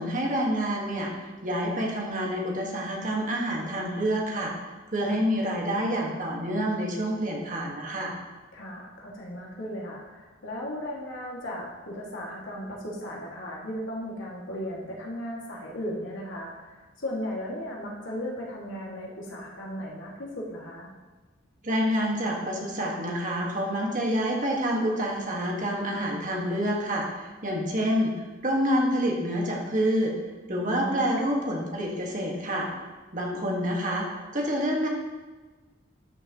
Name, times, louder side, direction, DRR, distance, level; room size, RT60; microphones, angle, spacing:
voice 1, 0.0-4.5 4.9-8.1 21.6-28.1 28.4-30.1 30.5-32.7 33.1-34.1 34.3-34.9, equal, 45° right, -1 dB, 1.7 m, -27 dB
voice 2, 8.5-20.9 30.5-31.0, equal, 85° left, -3 dB, 2.2 m, -36 dB
13.0 x 6.3 x 3.1 m, 1.3 s
head